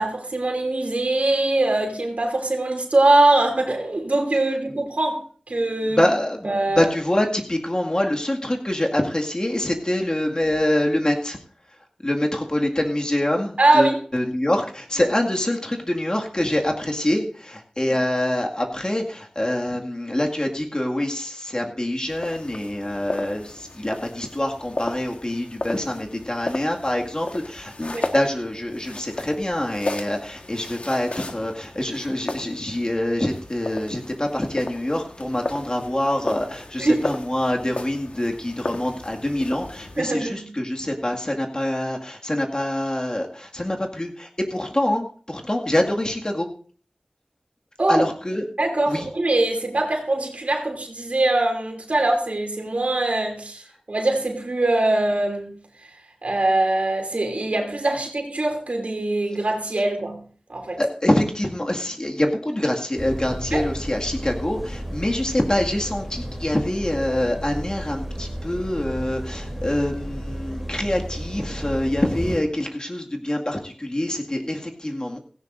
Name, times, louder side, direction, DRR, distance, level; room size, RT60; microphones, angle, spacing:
voice 1, 0.0-6.0 6.4-6.9 13.6-14.0 27.9-28.1 36.8-37.0 40.0-40.5 47.8-48.1 48.6-55.6 56.2-60.2 60.5-60.8 63.5-63.6, right 2 dB, 70° right, 2.9 m, -22 dB
voice 2, 5.8-11.4 12.0-46.5 47.9-48.5 48.9-49.1 60.8-75.2, left 1 dB, 35° left, 2.1 m, -25 dB
sound 1, 22.1-40.0, left 2 dB, 60° left, 1.5 m, -35 dB
sound 2, 63.0-72.4, equal, ahead, 3.3 m, -33 dB
16.5 x 16.0 x 2.6 m
wide cardioid pair, 55°, 2 cm